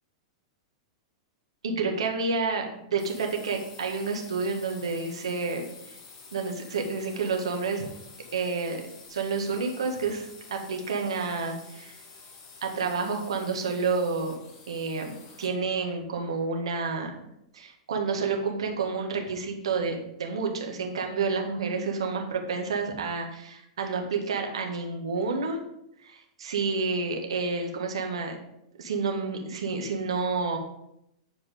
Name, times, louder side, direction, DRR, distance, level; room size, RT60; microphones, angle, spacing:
voice 1, 1.6-5.7 6.3-7.9 8.3-12.0 12.6-14.3 14.7-17.2 17.5-25.6 26.0-28.4 28.8-30.6, right 4 dB, 70° right, 2 dB, 1.8 m, -29 dB
sound 1, 3.0-15.7, left 4 dB, 40° left, 2.1 m, -49 dB
9.7 x 4.7 x 5.1 m, 0.80 s
hypercardioid pair, 100°, 3 cm